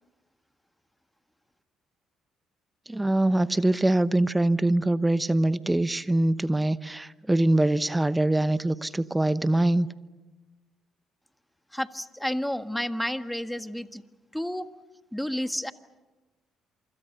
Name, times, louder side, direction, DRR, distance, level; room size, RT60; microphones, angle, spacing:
voice 1, 2.9-9.9, right 1 dB, 10° right, 15 dB, 1.0 m, -23 dB
voice 2, 11.7-14.0 14.3-14.7 15.1-15.7, equal, 5° left, 10 dB, 1.6 m, -30 dB
27.5 x 25.5 x 6.8 m, 1.1 s
hypercardioid pair, 55°, 0 cm